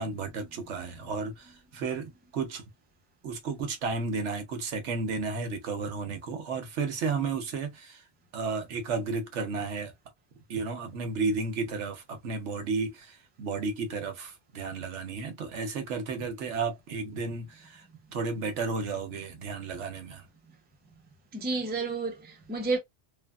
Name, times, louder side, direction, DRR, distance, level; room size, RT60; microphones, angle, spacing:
voice 1, 0.0-2.6 3.2-8.0 8.3-9.9 10.5-17.9 18.1-20.2, right 4 dB, 90° right, 1.1 m, -33 dB
voice 2, 21.3-22.8, right 3 dB, 15° right, 0.4 m, -30 dB
3.4 x 2.1 x 2.3 m
omnidirectional pair, 1.2 m